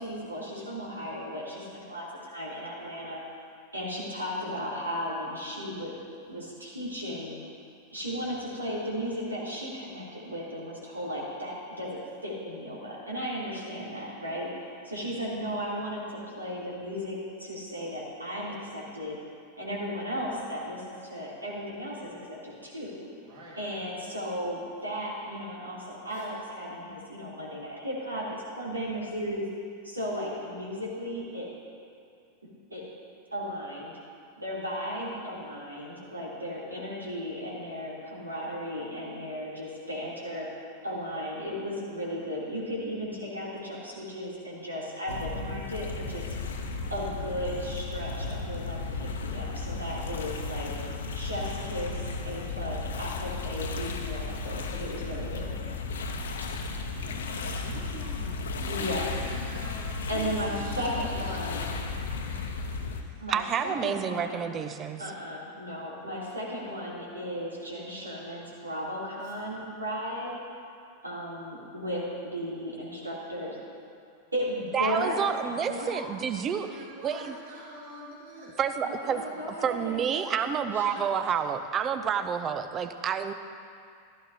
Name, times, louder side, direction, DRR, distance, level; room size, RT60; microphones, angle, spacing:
voice 1, 0.0-3.2 3.7-5.9 6.3-7.3 7.9-19.2 19.6-23.1 23.6-29.4 29.8-31.5 32.7-32.8 33.3-33.9 34.4-40.5 40.8-46.3 46.9-50.7 51.1-55.5 56.4-56.9 58.7-59.1 60.1-61.7 63.2-64.4 65.0-70.3 71.0-73.6 74.3-75.3 75.6-76.1 78.8-81.1, equal, 80° right, -5 dB, 3.0 m, -35 dB
voice 2, 13.3-13.7 14.2-14.5 14.8-15.1 23.2-23.6 26.1-26.3 56.5-63.2 65.8-66.1 69.2-69.4 76.5-79.5, right 2 dB, 55° right, -6 dB, 3.3 m, -46 dB
sound 1, 45.1-63.0, left 4 dB, 65° left, 0.9 m, -34 dB
voice 3, 63.3-65.0 74.7-76.7 77.0-77.3 78.6-79.2 79.6-83.3, right 7 dB, 25° right, 10 dB, 0.6 m, -29 dB
16.0 x 12.5 x 2.8 m, 2.4 s
figure-of-eight pair, 90°, 0 cm